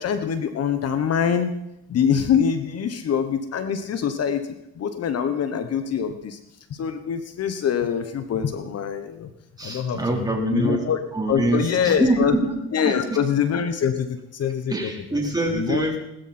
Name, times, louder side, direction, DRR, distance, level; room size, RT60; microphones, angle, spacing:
voice 1, 0.0-1.5 1.9-6.4 6.7-9.3 9.6-11.0 11.3-12.3 12.7-14.7 15.5-16.0, left 7 dB, 50° left, 9 dB, 1.2 m, -24 dB
voice 2, 9.6-13.2 14.7-16.0, right 2 dB, 15° right, 0 dB, 4.1 m, -25 dB
20.0 x 13.0 x 4.4 m, 0.85 s
cardioid pair, 100°, 31 cm